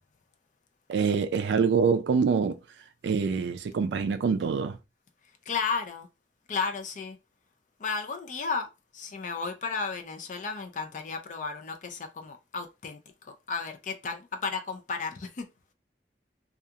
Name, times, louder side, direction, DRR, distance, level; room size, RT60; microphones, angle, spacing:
voice 1, 0.9-2.6 3.0-4.8, right 5 dB, 75° right, 0.3 m, -25 dB
voice 2, 5.5-6.1 6.5-7.2 7.8-15.5, left 5 dB, 45° left, 0.4 m, -33 dB
2.3 x 2.3 x 2.7 m
head